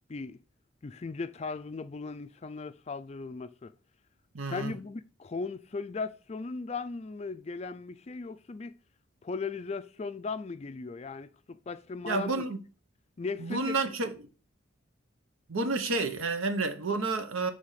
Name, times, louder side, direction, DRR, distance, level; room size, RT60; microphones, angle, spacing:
voice 1, 0.8-3.7 4.4-8.8 9.2-12.4 13.2-13.8, left 4 dB, 30° left, 0.3 m, -37 dB
voice 2, 4.3-4.7 12.1-12.6 13.4-14.1 15.5-17.5, right 3 dB, 80° right, 0.9 m, -30 dB
6.6 x 3.4 x 5.6 m
head